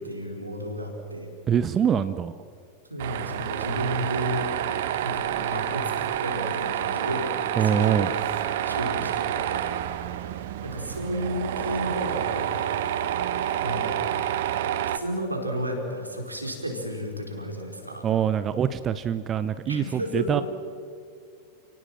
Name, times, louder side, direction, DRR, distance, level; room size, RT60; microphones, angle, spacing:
voice 1, 0.0-1.3 2.9-4.5 5.0-7.3 7.6-8.1 8.6-9.7 10.6-12.5 13.6-13.9 14.9-18.0 19.7-20.4, equal, 85° right, 2 dB, 4.3 m, -32 dB
voice 2, 1.5-2.3 7.6-8.1 18.0-20.4, right 8 dB, 25° right, 13 dB, 0.8 m, -24 dB
Tools, 3.0-15.0, right 11 dB, 55° right, 1.1 m, -28 dB
30.0 x 18.5 x 7.4 m, 2.4 s
figure-of-eight pair, 90°, 0 cm